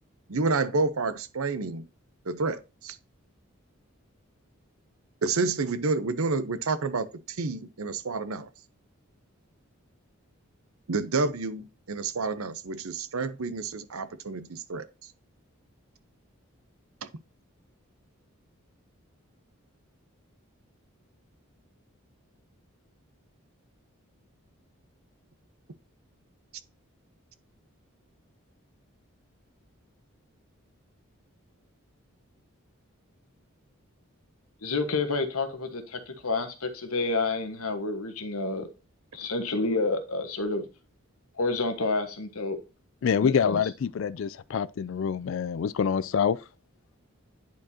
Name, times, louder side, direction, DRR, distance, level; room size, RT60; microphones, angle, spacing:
voice 1, 0.3-1.8 2.3-3.0 5.2-8.5 10.9-14.9, right 3 dB, 80° right, 0.8 m, -29 dB
voice 2, 34.6-38.7 39.1-40.6 41.4-42.6 43.2-43.6, left 3 dB, 90° left, 1.4 m, -29 dB
voice 3, 43.0-46.4, left 7 dB, 65° left, 0.3 m, -26 dB
10.5 x 4.6 x 2.8 m
head